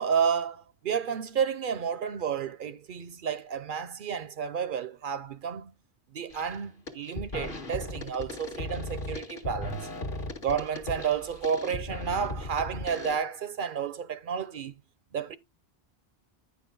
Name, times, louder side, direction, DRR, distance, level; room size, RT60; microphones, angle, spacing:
voice 1, 0.0-5.7 6.1-9.9 10.4-14.7 15.1-15.4, right 7 dB, 60° right, 0.7 m, -31 dB
sound 1, 6.3-6.6 6.9-13.2, left 2 dB, 55° left, 1.7 m, -37 dB
10.0 x 6.0 x 3.8 m
omnidirectional pair, 1.0 m